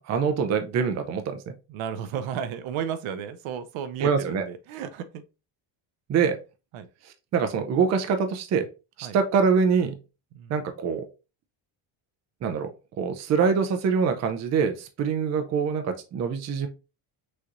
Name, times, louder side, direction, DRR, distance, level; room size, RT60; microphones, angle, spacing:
voice 1, 0.0-1.5 4.0-4.4 6.1-6.4 7.0-8.7 9.0-10.0 10.5-11.0 12.4-16.7, right 6 dB, 35° right, 0.5 m, -24 dB
voice 2, 1.7-5.2 6.7-6.9 9.0-9.2 10.3-10.5, right 8 dB, 70° right, 0.7 m, -33 dB
6.3 x 3.0 x 2.5 m
cardioid pair, 175°, 50 cm